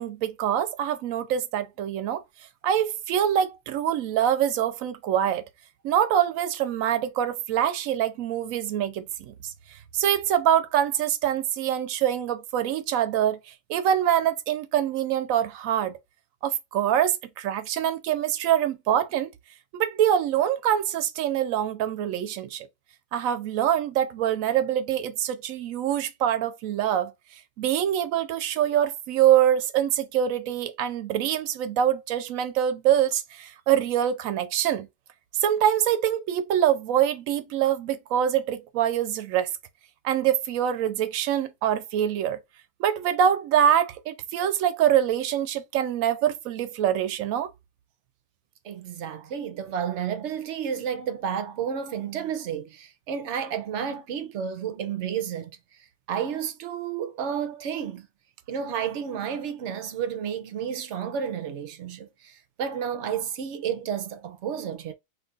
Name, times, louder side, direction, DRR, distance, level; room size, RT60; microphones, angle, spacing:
voice 1, 0.0-2.2 2.6-5.4 5.8-9.5 9.9-13.4 13.7-16.0 16.4-19.3 19.7-22.7 23.1-27.1 27.6-34.9 35.4-39.5 40.0-42.4 42.8-47.5, right 10 dB, 85° right, 1.0 m, -24 dB
voice 2, 48.6-55.5 56.1-58.1 58.5-62.3 62.6-64.9, right 8 dB, 65° right, 0.9 m, -31 dB
2.9 x 2.4 x 3.8 m
omnidirectional pair, 1.4 m